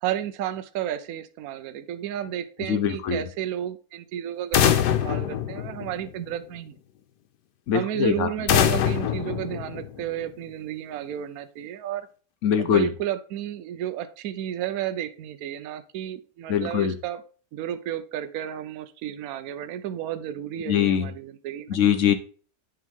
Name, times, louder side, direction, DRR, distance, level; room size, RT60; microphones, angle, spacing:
voice 1, 0.0-6.8 7.7-12.1 12.6-17.2 17.5-21.7, right 11 dB, 70° right, 11 dB, 1.0 m, -32 dB
voice 2, 2.7-3.2 7.7-8.3 12.4-12.9 16.5-16.9 20.7-21.1 21.7-22.1, left 8 dB, 65° left, 9 dB, 0.8 m, -22 dB
sound 1, 4.5-6.3 8.5-10.3, left 10 dB, 80° left, 1.3 m, -24 dB
8.9 x 3.6 x 3.5 m, 0.40 s
omnidirectional pair, 1.8 m